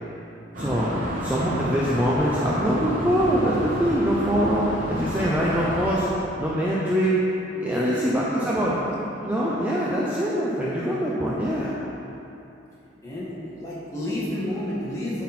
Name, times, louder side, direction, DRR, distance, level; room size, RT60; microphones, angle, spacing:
sound 1, 0.5-6.0, equal, 40° right, 1.2 m, -30 dB
voice 1, 0.6-0.9 1.2-6.1 6.4-7.1 7.6-8.7 9.2-11.7, equal, 10° right, -7 dB, 0.6 m, -23 dB
voice 2, 7.5-8.9 13.0-15.2, left 1 dB, 15° left, -9 dB, 1.7 m, -32 dB
9.6 x 4.3 x 4.3 m, 2.9 s
head